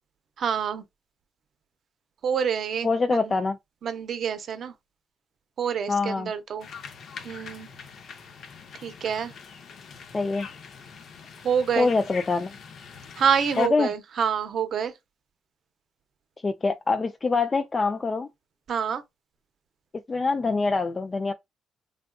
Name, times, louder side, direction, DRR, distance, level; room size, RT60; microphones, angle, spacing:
voice 1, 0.4-0.8 2.2-3.3 3.8-4.7 5.6-6.7 7.2-7.7 8.8-9.3 11.4-11.9 13.2-14.9 18.7-19.0, right 7 dB, 60° right, 0.6 m, -27 dB
voice 2, 2.8-3.6 5.9-6.3 10.1-10.5 11.8-12.5 13.6-13.9 16.4-18.3 20.1-21.3, left 4 dB, 30° left, 0.3 m, -24 dB
sound 1, 6.6-13.7, left 6 dB, 65° left, 0.6 m, -43 dB
3.5 x 2.4 x 2.2 m
cardioid pair, 90°, 0 cm